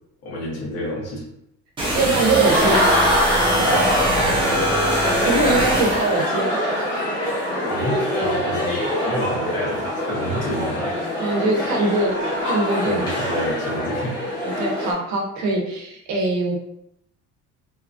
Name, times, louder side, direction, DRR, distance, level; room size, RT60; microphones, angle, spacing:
voice 1, 0.2-1.2 3.4-4.9 7.6-10.9 12.8-14.2, equal, 60° left, -4 dB, 1.2 m, -29 dB
sound 1, 1.8-6.2, right 1 dB, 15° right, 0.6 m, -23 dB
voice 2, 1.9-2.9 5.2-7.0 11.2-13.1 14.4-16.6, right 2 dB, 75° right, 0 dB, 0.8 m, -22 dB
sound 2, 2.1-14.9, equal, 15° left, 0.8 m, -23 dB
2.8 x 2.3 x 2.5 m, 0.77 s
cardioid pair, 180°, 29 cm